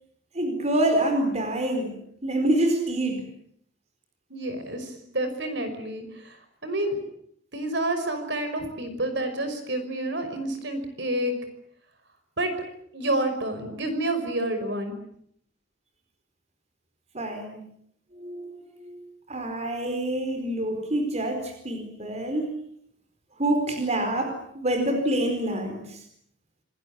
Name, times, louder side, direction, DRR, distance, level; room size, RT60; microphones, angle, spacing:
voice 1, 0.3-2.0 2.2-3.3 17.1-17.6 18.1-19.0 19.3-22.5 23.4-26.0, right 1 dB, 35° right, 6 dB, 4.5 m, -26 dB
voice 2, 4.3-6.4 6.6-7.0 7.5-11.3 12.4-12.5 12.9-14.9, right 1 dB, 65° right, 8 dB, 5.6 m, -29 dB
27.5 x 21.0 x 8.6 m, 0.69 s
head